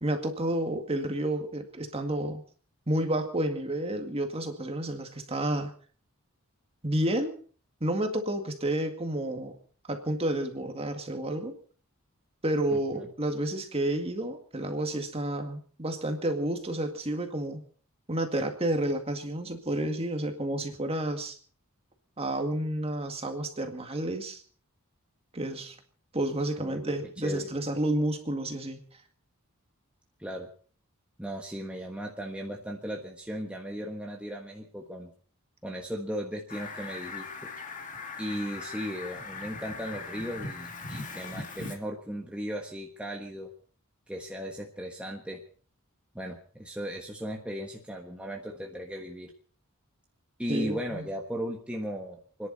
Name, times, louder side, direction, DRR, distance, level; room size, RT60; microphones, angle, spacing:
voice 1, 0.0-2.4 2.9-5.7 6.8-7.4 7.8-9.6 9.9-11.6 12.4-17.6 18.1-21.4 22.2-24.4 25.3-25.8 26.1-28.8 50.5-51.0, right 1 dB, 25° right, 5 dB, 2.0 m, -30 dB
voice 2, 12.7-13.1 26.6-27.0 27.2-27.5 30.2-30.5 31.2-35.1 35.6-37.5 38.2-43.5 44.1-45.4 46.1-49.3 50.4-52.5, equal, 5° right, 0 dB, 1.4 m, -37 dB
Fowl, 36.5-41.7, left 4 dB, 35° left, 2.2 m, -40 dB
29.5 x 10.5 x 4.1 m, 0.43 s
head